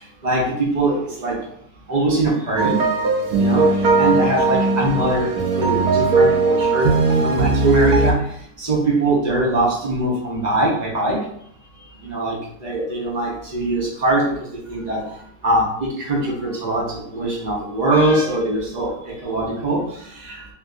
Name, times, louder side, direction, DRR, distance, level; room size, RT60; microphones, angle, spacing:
voice 1, 0.0-1.5 1.9-2.9 3.4-11.3 11.7-20.5, right 1 dB, 45° right, -3 dB, 0.6 m, -22 dB
sound 1, 2.6-8.1, right 3 dB, 75° right, 1.1 m, -18 dB
3.4 x 2.6 x 2.4 m, 0.67 s
omnidirectional pair, 1.7 m